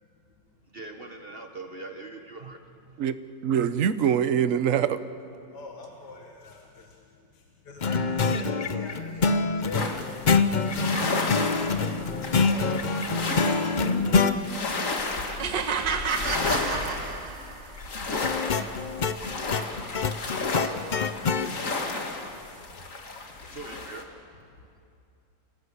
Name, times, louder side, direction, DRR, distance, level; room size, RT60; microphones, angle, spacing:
voice 1, 0.7-3.0 23.2-24.2, right 2 dB, 35° right, 5 dB, 1.2 m, -42 dB
voice 2, 3.4-5.0, right 8 dB, 55° right, 12 dB, 1.0 m, -23 dB
voice 3, 5.5-14.9 15.7-17.4 21.1-21.8 22.8-23.2 24.6-24.8, left 3 dB, 65° left, 1 dB, 2.3 m, -45 dB
sound 1, 7.8-14.4 18.1-21.5, left 4 dB, 90° left, 0.4 m, -25 dB
sound 2, 9.7-24.0, left 3 dB, 45° left, 2.2 m, -32 dB
sound 3, 15.4-17.7, right 5 dB, 70° right, 2.0 m, -30 dB
27.5 x 18.0 x 8.2 m, 2.5 s
omnidirectional pair, 2.0 m